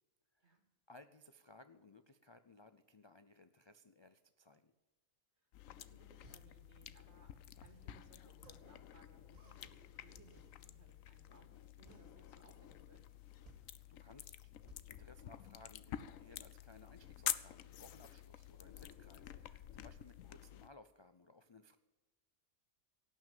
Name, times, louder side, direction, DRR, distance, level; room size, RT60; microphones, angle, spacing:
voice 1, 0.9-4.7 13.6-13.7 14.0-14.4 14.9-21.8, left 3 dB, 50° left, 10 dB, 0.3 m, -61 dB
voice 2, 5.4-13.0, right 3 dB, 50° right, 3 dB, 2.9 m, -66 dB
sound 1, 5.5-20.7, left 11 dB, 75° left, 1.0 m, -49 dB
sound 2, 6.0-16.1, right 2 dB, 70° right, 3.2 m, -64 dB
17.0 x 6.3 x 9.1 m, 1.1 s
omnidirectional pair, 1.4 m